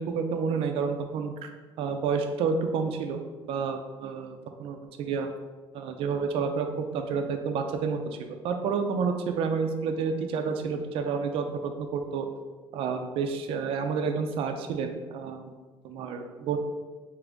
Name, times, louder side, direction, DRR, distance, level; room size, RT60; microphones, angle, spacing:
voice 1, 0.0-1.5 1.8-3.2 3.4-5.3 5.7-11.5 11.8-12.3 12.7-15.5 15.8-16.6, right 5 dB, 65° right, 6 dB, 0.4 m, -30 dB
3.4 x 2.9 x 3.7 m, 1.3 s
cardioid pair, 155°, 10 cm